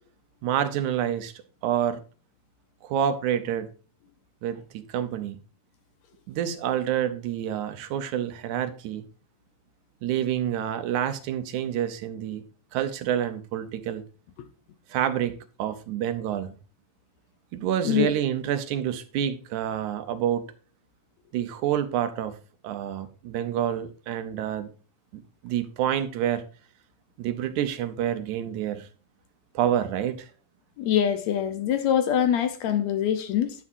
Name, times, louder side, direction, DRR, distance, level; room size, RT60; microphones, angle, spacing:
voice 1, 0.4-1.3 1.6-2.0 2.8-3.7 4.4-5.4 6.3-9.0 10.0-12.4 12.7-14.0 14.9-16.5 17.5-20.5 21.3-22.4 22.6-24.7 25.1-26.4 27.2-28.9 29.5-30.3, right 10 dB, 75° right, 2.2 m, -28 dB
voice 2, 30.8-33.6, left 9 dB, 70° left, 2.0 m, -24 dB
9.7 x 9.4 x 2.6 m
omnidirectional pair, 3.6 m